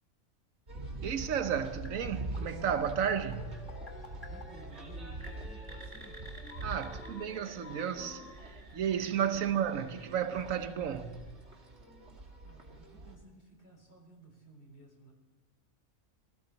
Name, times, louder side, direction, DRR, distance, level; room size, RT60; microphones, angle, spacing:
sound 1, 0.7-13.1, right 2 dB, 55° right, 2.9 m, -44 dB
voice 1, 1.0-3.9 6.6-11.5, right 8 dB, 80° right, 1.3 m, -33 dB
sound 2, 1.8-11.6, equal, 20° right, 3.0 m, -55 dB
sound 3, 2.6-3.0 3.4-8.3, left 4 dB, 85° left, 2.0 m, -52 dB
voice 2, 4.3-6.2 9.3-9.6 12.4-15.1, right 2 dB, 50° left, 4.1 m, -55 dB
19.0 x 15.0 x 4.1 m
omnidirectional pair, 1.4 m